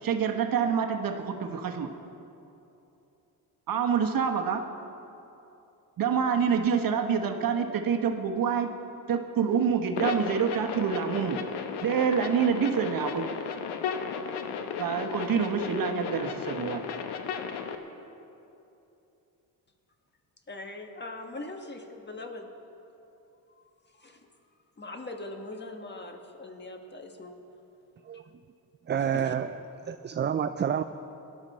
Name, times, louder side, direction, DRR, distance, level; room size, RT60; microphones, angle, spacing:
voice 1, 0.0-1.9 3.7-4.6 6.0-8.7 9.1-11.4 11.8-13.3 14.8-16.8, right 7 dB, 55° right, 5 dB, 1.2 m, -27 dB
sound 1, 9.9-17.7, left 6 dB, 85° left, 1.0 m, -34 dB
voice 2, 20.5-22.5 23.9-24.3 24.8-27.4 29.1-29.3, left 2 dB, 25° left, 4 dB, 1.5 m, -41 dB
voice 3, 28.9-29.5 29.9-30.8, right 8 dB, 30° right, 10 dB, 0.4 m, -28 dB
18.0 x 11.5 x 4.2 m, 2.8 s
cardioid pair, 80°, 40 cm